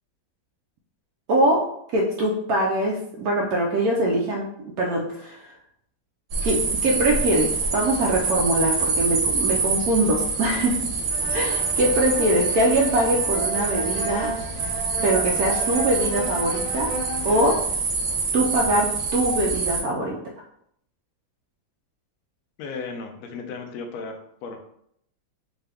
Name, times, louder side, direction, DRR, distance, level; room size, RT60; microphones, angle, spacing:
voice 1, 1.3-1.6 1.9-5.4 6.4-10.8 11.3-14.3 15.0-16.9 17.2-17.6 18.3-20.2, right 1 dB, 85° right, -1 dB, 0.8 m, -23 dB
sound 1, 6.3-19.8, right 4 dB, 65° right, 1.1 m, -26 dB
sound 2, 11.1-17.6, right 2 dB, 35° left, 0.7 m, -34 dB
voice 2, 22.6-24.6, left 4 dB, 70° left, 3 dB, 0.9 m, -35 dB
3.8 x 2.3 x 3.3 m, 0.71 s
omnidirectional pair, 2.2 m